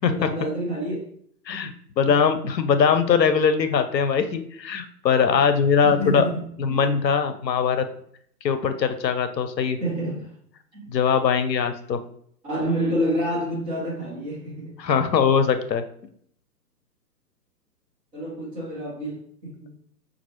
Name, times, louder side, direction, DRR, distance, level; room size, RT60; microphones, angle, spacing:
voice 1, 0.1-1.1 2.0-2.3 5.8-6.9 9.8-10.3 10.7-10.9 12.4-14.7 18.1-19.8, right 1 dB, 10° right, -6 dB, 0.8 m, -28 dB
voice 2, 1.5-6.2 6.6-7.8 8.4-9.8 10.9-12.0 14.8-15.8, left 6 dB, 85° left, 9 dB, 0.7 m, -21 dB
5.3 x 2.5 x 3.0 m, 0.64 s
hypercardioid pair, 145°, 49 cm